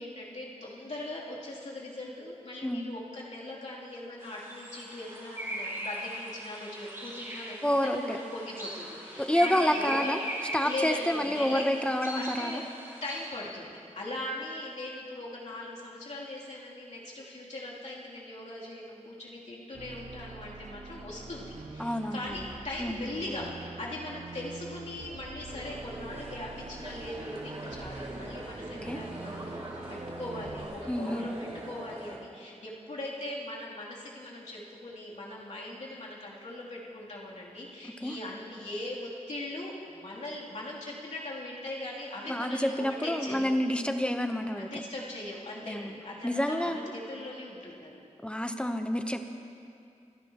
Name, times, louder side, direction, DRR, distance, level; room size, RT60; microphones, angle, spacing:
voice 1, 0.0-12.6 13.0-43.6 44.5-48.0, left 1 dB, 70° left, -6 dB, 2.9 m, -40 dB
sound 1, 4.2-13.3, right 1 dB, 20° right, 3.7 m, -39 dB
voice 2, 7.6-8.2 9.2-10.2 10.5-12.6 21.8-22.3 22.8-23.0 28.8-29.0 30.9-31.3 38.0-38.1 42.3-44.7 45.7-45.9 46.2-46.9 48.2-49.2, equal, 10° left, 6 dB, 0.8 m, -28 dB
sound 2, 19.7-30.6, right 3 dB, 75° right, 1.4 m, -45 dB
sound 3, 25.5-32.2, right 1 dB, 50° right, 2.3 m, -42 dB
28.0 x 11.0 x 2.9 m, 2.5 s
wide cardioid pair, 95°, 13 cm